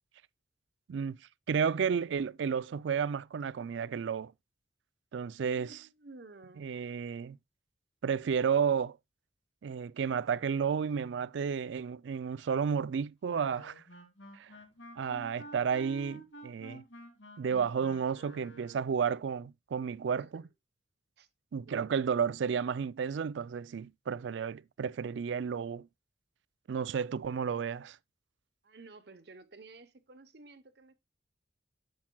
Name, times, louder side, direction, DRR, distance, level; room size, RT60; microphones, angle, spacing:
voice 1, 1.5-4.3 5.1-5.8 6.6-7.4 8.0-9.0 9.6-13.8 14.3-14.5 15.0-16.8 17.4-20.4 21.5-25.9 26.7-28.0, right 6 dB, 75° right, 0.4 m, -32 dB
voice 2, 5.3-7.1 20.1-20.5 21.2-21.3 21.7-22.0 28.6-30.9, right 3 dB, 60° right, 0.9 m, -53 dB
Wind instrument woodwind instrument, 13.3-19.0, right 1 dB, 80° left, 2.5 m, -50 dB
10.5 x 7.3 x 2.2 m
head